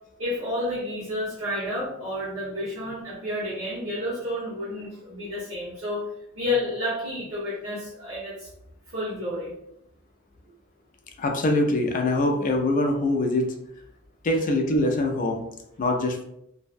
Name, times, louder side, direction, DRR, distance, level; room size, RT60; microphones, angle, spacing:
voice 1, 0.2-6.0 6.3-8.5 8.9-9.5, left 1 dB, 75° right, -12 dB, 1.2 m, -30 dB
voice 2, 11.2-13.5 14.2-15.4 15.8-16.2, left 1 dB, 40° left, 3 dB, 0.4 m, -23 dB
2.6 x 2.1 x 2.4 m, 0.77 s
head